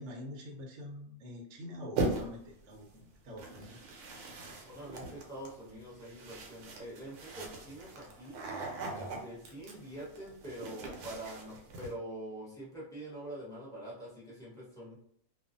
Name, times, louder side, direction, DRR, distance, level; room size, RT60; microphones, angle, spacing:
voice 1, 0.0-3.8, left 1 dB, 65° right, 0 dB, 0.9 m, -45 dB
sound 1, 2.0-2.5 3.4-11.9, right 2 dB, 90° right, 1.1 m, -40 dB
voice 2, 4.5-8.4 8.9-15.0, right 1 dB, 5° left, -8 dB, 0.8 m, -45 dB
2.4 x 2.3 x 2.5 m, 0.66 s
omnidirectional pair, 1.6 m